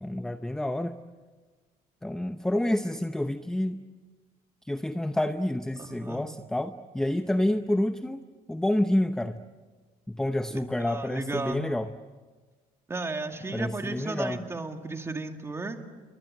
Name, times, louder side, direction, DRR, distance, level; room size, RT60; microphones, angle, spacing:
voice 1, 0.0-1.0 2.0-3.8 4.6-9.4 10.1-11.9 13.5-14.4, left 1 dB, 5° left, 9 dB, 0.7 m, -28 dB
voice 2, 5.8-6.2 10.8-11.6 12.9-15.8, right 3 dB, 15° right, 5 dB, 2.3 m, -34 dB
29.5 x 24.5 x 7.8 m, 1.4 s
cardioid pair, 135°, 15 cm